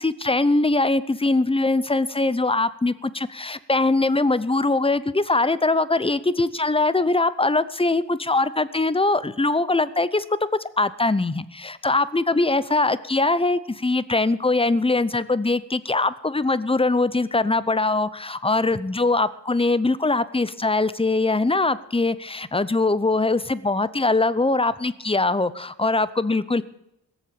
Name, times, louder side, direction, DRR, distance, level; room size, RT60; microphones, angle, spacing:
voice 1, 0.0-10.2 10.6-26.6, left 2 dB, 15° left, 17 dB, 0.7 m, -22 dB
18.0 x 7.2 x 8.6 m, 0.83 s
wide cardioid pair, 80°, 42 cm